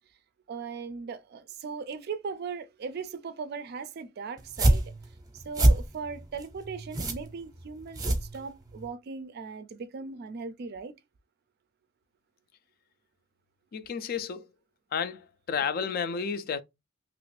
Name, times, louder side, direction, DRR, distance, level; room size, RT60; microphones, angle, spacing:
voice 1, 0.5-4.9 5.3-10.9, right 5 dB, 50° right, 0.4 m, -38 dB
sound 1, 4.4-8.9, right 1 dB, 20° right, 0.7 m, -26 dB
voice 2, 13.7-14.5 14.9-16.6, left 6 dB, 45° left, 0.3 m, -31 dB
3.0 x 2.5 x 3.1 m
head